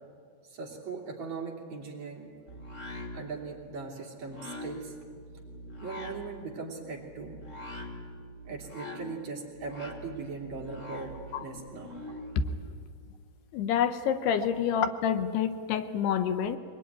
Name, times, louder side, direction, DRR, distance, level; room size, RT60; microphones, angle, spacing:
voice 1, 0.4-2.3 3.1-5.0 5.8-7.4 8.5-12.0 14.3-14.5, right 4 dB, 45° right, -1 dB, 3.9 m, -39 dB
sound 1, 2.5-12.4, left 1 dB, 40° left, 1.0 m, -44 dB
voice 2, 13.5-16.6, left 8 dB, 80° left, 10 dB, 2.9 m, -27 dB
23.0 x 21.5 x 9.8 m, 2.2 s
omnidirectional pair, 4.8 m